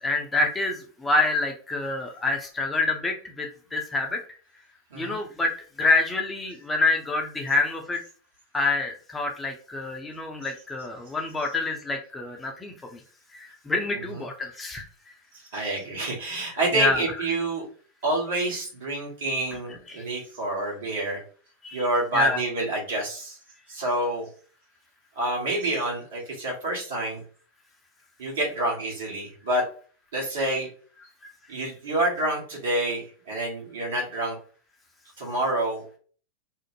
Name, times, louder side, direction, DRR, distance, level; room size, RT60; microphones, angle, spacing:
voice 1, 0.0-4.2 4.9-5.5 5.8-8.0 8.5-13.0 13.3-14.9 16.7-17.0 19.9-20.0 21.6-21.8 22.1-22.4, left 3 dB, 15° left, 2 dB, 0.5 m, -27 dB
voice 2, 13.9-14.2 15.5-17.6 18.0-21.2 21.7-23.4 23.7-24.3 25.2-27.2 28.2-29.6 30.1-30.7 31.5-34.4 35.2-35.8, right 2 dB, 60° right, -2 dB, 1.2 m, -28 dB
2.6 x 2.0 x 3.0 m, 0.42 s
figure-of-eight pair, 90°, 0 cm